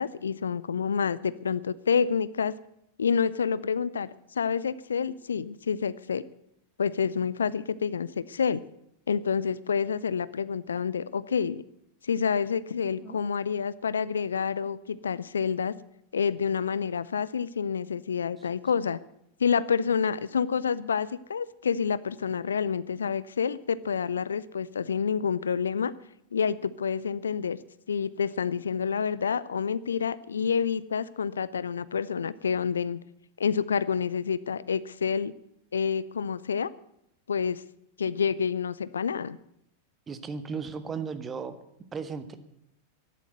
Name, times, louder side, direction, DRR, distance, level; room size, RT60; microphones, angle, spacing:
voice 1, 0.0-2.6 3.0-6.2 6.8-8.6 9.1-11.6 12.0-15.7 16.1-19.0 19.4-25.9 26.3-27.6 27.9-33.0 33.4-35.3 35.7-36.7 37.3-37.6 38.0-39.4, left 6 dB, 70° left, 19 dB, 0.5 m, -28 dB
voice 2, 40.1-41.6 41.9-42.4, right 5 dB, 20° right, 10 dB, 1.4 m, -35 dB
13.0 x 11.0 x 8.0 m, 0.77 s
figure-of-eight pair, 90°, 0 cm